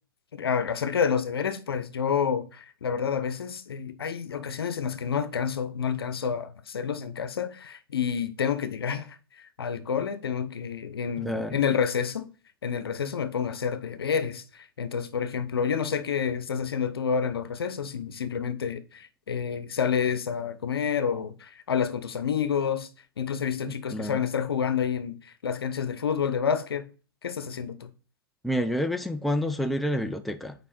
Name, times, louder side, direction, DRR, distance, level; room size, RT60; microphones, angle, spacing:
voice 1, 0.3-12.2 12.6-22.9 23.2-26.9 27.2-27.9, left 7 dB, 85° left, 0.9 m, -29 dB
voice 2, 11.2-11.6 23.7-24.2 28.4-30.5, equal, ahead, 0.4 m, -29 dB
5.3 x 4.8 x 4.3 m
hypercardioid pair, 125°, 12 cm